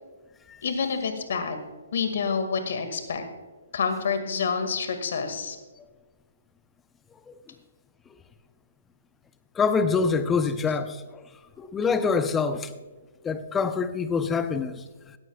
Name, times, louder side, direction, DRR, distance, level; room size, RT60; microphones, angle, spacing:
voice 1, 0.6-1.6 1.9-3.2 3.7-5.6, left 5 dB, 60° left, 7 dB, 2.0 m, -28 dB
voice 2, 9.5-11.2 11.6-12.7 13.2-15.2, left 5 dB, 15° left, 11 dB, 0.8 m, -26 dB
17.5 x 13.5 x 2.4 m, 1.3 s
hypercardioid pair, 130°, 0 cm